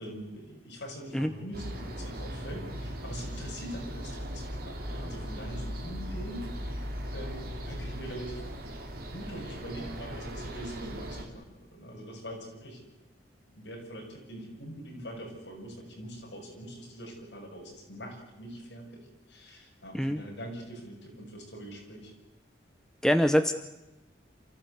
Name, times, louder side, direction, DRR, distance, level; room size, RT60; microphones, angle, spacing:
voice 1, 0.0-6.5 7.1-8.4 9.1-12.8 13.5-22.1, equal, 65° left, 0 dB, 7.0 m, -43 dB
sound 1, 1.5-11.2, equal, 50° right, 2.7 m, -38 dB
voice 2, 23.0-23.5, equal, 5° left, 8 dB, 0.8 m, -24 dB
28.0 x 14.5 x 8.1 m, 0.97 s
head